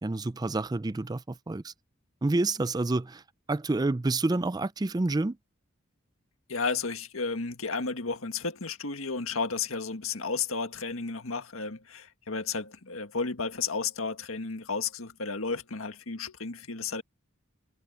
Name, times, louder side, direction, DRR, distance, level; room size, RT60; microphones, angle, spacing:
voice 1, 0.0-1.7 2.2-3.2 3.5-5.4, right 2 dB, 20° right, 0.4 m, -28 dB
voice 2, 6.5-17.0, left 4 dB, 90° left, 1.7 m, -33 dB
head